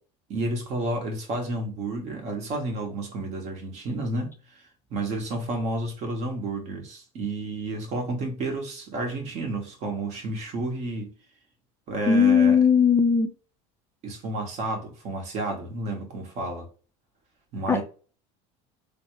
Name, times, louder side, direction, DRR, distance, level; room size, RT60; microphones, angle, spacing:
voice 1, 0.3-4.4 4.9-11.1 11.9-12.6 14.0-16.7 17.5-17.8, right 2 dB, 50° right, 1.7 m, -31 dB
voice 2, 12.1-13.3 17.7-17.8, left 6 dB, 15° left, 0.4 m, -18 dB
3.5 x 3.3 x 3.2 m
supercardioid pair, 120°, 15 cm